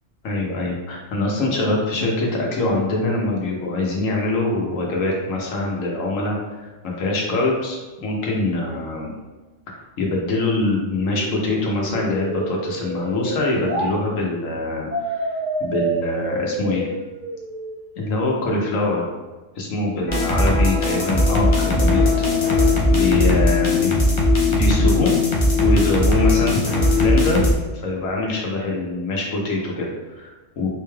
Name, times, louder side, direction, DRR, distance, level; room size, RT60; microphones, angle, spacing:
voice 1, 0.2-9.1 10.0-15.3 15.6-16.9 18.0-19.0 19.6-22.0 22.4-23.9 24.5-25.1 25.6-30.7, left 2 dB, 90° left, -2 dB, 1.2 m, -24 dB
sound 1, 11.1-13.9 14.9-17.9, right 2 dB, 40° right, 0.7 m, -29 dB
sound 2, 20.1-27.5, left 2 dB, 40° left, 0.4 m, -18 dB
4.1 x 2.3 x 3.2 m, 1.2 s
omnidirectional pair, 1.3 m